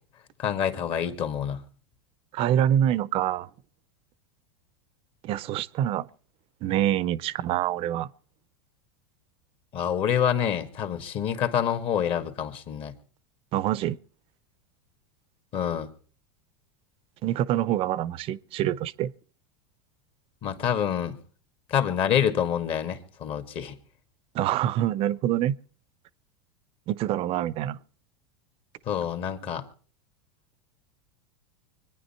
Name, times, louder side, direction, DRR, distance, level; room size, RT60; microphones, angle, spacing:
voice 1, 0.4-1.6 9.7-12.9 15.5-15.9 20.4-21.2 21.7-23.7 28.9-29.6, left 9 dB, 45° left, 1.9 m, -27 dB
voice 2, 2.3-3.5 5.2-6.1 6.6-8.1 13.5-14.0 17.2-19.1 24.3-25.6 26.9-27.8, right 11 dB, 45° right, 0.6 m, -26 dB
25.0 x 10.0 x 4.4 m
hypercardioid pair, 105°, 14 cm